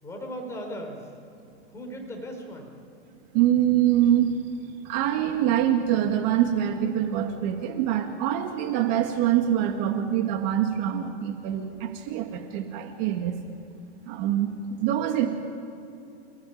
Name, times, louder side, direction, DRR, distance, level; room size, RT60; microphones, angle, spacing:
voice 1, 0.0-1.1 1.7-2.7, equal, 10° left, 2 dB, 4.3 m, -37 dB
voice 2, 3.3-4.4 4.8-13.4 14.1-15.3, right 11 dB, 40° right, 4 dB, 2.1 m, -24 dB
28.5 x 17.5 x 9.5 m, 2.8 s
supercardioid pair, 155°, 33 cm